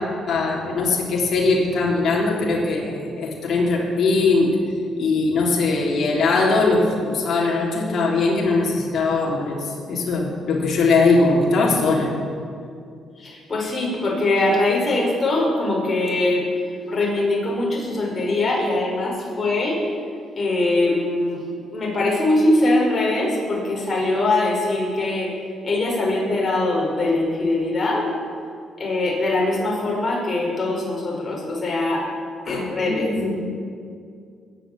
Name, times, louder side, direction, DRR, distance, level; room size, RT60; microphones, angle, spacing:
voice 1, 0.3-4.6 5.0-12.2 32.5-33.3, left 3 dB, 55° left, -3 dB, 3.3 m, -20 dB
voice 2, 13.2-16.5 16.9-19.8 20.4-25.3 25.6-28.1 28.8-32.1 32.5-33.1, left 2 dB, 35° left, -3 dB, 5.4 m, -22 dB
21.0 x 8.5 x 7.6 m, 2.3 s
cardioid pair, 90°, 0 cm